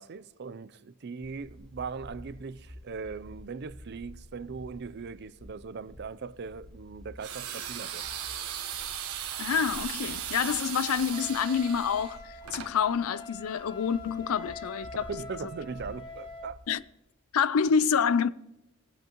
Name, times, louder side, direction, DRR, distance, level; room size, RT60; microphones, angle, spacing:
voice 1, 0.0-8.0 15.1-16.7, right 5 dB, 50° right, 0.5 m, -39 dB
sound 1, 1.2-16.8, left 1 dB, 5° left, 1.1 m, -51 dB
sound 2, 7.2-12.7, right 9 dB, 85° right, 1.3 m, -37 dB
voice 2, 9.4-15.1 16.7-16.8 17.3-18.3, left 6 dB, 75° left, 0.4 m, -27 dB
Wind instrument woodwind instrument, 11.1-16.5, left 3 dB, 20° left, 1.6 m, -44 dB
20.5 x 8.1 x 3.0 m
head